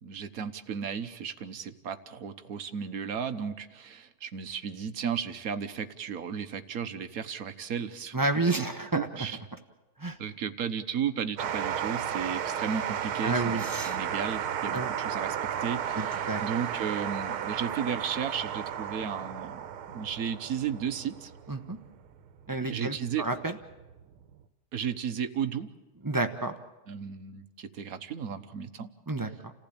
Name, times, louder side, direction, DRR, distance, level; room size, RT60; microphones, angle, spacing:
voice 1, 0.0-8.2 8.5-8.7 8.9-9.4 10.2-19.6 19.9-21.3 22.7-23.3 24.7-25.7 26.9-28.9, right 7 dB, 50° right, 10 dB, 1.2 m, -34 dB
voice 2, 8.1-9.1 10.0-10.2 13.2-14.0 14.7-14.9 16.0-16.4 21.5-21.8 22.5-23.5 26.0-26.5 29.1-29.5, right 2 dB, 30° right, 6 dB, 0.3 m, -30 dB
sound 1, 11.4-24.3, right 9 dB, 85° right, 1.8 m, -34 dB
29.0 x 15.5 x 8.7 m, 1.1 s
omnidirectional pair, 2.3 m